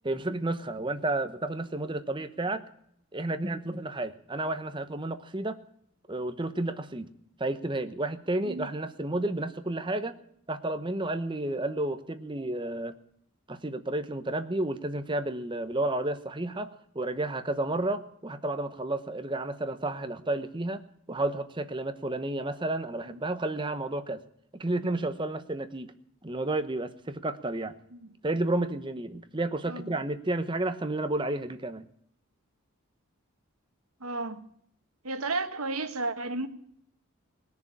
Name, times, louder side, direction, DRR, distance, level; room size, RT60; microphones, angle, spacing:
voice 1, 0.0-2.6 3.1-5.6 6.1-7.1 7.4-10.2 10.5-13.0 13.5-20.8 21.1-24.2 24.5-25.9 26.2-27.7 28.2-31.8, right 2 dB, 20° right, 10 dB, 0.9 m, -31 dB
voice 2, 8.4-8.8 23.0-23.2 27.9-28.1 29.7-29.9 34.0-34.5 35.0-36.5, right 2 dB, 85° right, 9 dB, 1.4 m, -33 dB
20.0 x 7.0 x 9.6 m, 0.69 s
head